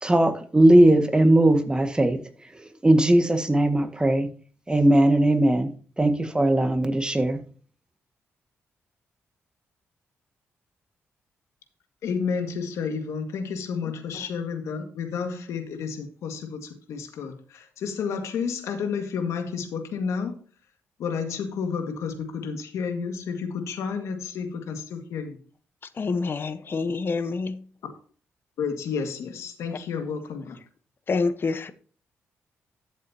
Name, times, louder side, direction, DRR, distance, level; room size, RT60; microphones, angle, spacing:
voice 1, 0.0-2.2 2.8-4.3 4.7-5.7 6.0-7.4, right 1 dB, 20° right, 7 dB, 1.8 m, -19 dB
voice 2, 12.0-20.3 21.0-25.4 28.6-30.6, left 6 dB, 85° left, 6 dB, 1.9 m, -31 dB
voice 3, 26.0-27.7 29.7-29.8 31.1-31.7, left 4 dB, 50° left, 12 dB, 1.0 m, -27 dB
12.5 x 7.4 x 2.8 m, 0.43 s
cardioid pair, 70°, 5 cm